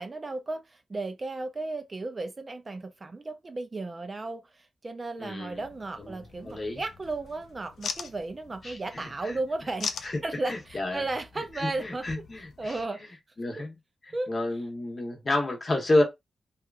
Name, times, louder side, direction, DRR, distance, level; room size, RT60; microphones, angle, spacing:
voice 1, 0.0-12.1 12.6-13.0 14.1-14.3, right 2 dB, 30° right, 0.4 m, -34 dB
voice 2, 5.2-5.6 6.0-6.2 6.4-6.8 8.6-9.3 10.0-10.2 10.5-11.0 11.5-12.8 13.4-13.7 14.1-16.0, left 2 dB, 35° left, 0.8 m, -30 dB
sound 1, 5.5-12.9, left 6 dB, 90° left, 0.3 m, -42 dB
2.8 x 2.3 x 2.4 m
wide cardioid pair, 125°, 0 cm